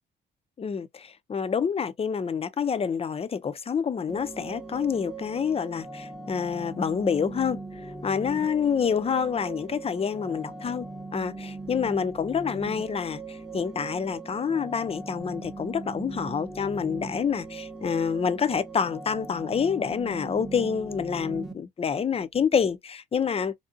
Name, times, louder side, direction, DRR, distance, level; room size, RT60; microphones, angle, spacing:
voice 1, 0.6-10.9 11.1-23.5, left 6 dB, 30° left, 0.5 m, -27 dB
sound 1, 4.1-21.5, right 3 dB, ahead, 0.7 m, -39 dB
3.4 x 2.6 x 2.4 m
cardioid pair, 90°, 20 cm